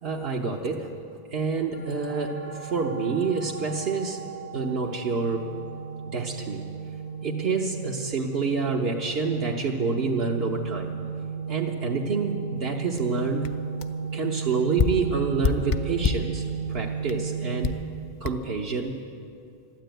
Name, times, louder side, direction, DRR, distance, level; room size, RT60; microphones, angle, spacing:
voice 1, 0.0-0.9 1.3-4.3 4.5-5.5 6.1-6.6 7.2-10.9 11.5-13.5 14.1-17.7 18.2-19.0, right 4 dB, 75° right, -2 dB, 1.2 m, -28 dB
sound 1, 1.7-17.7, right 6 dB, 90° left, 2.1 m, -34 dB
sound 2, 13.0-13.1 13.4-13.5 13.8-14.0 14.8-16.3 17.1-17.2 17.6-17.9 18.2-18.3, left 6 dB, 45° left, 0.4 m, -27 dB
13.0 x 12.0 x 9.0 m, 2.4 s
omnidirectional pair, 1.0 m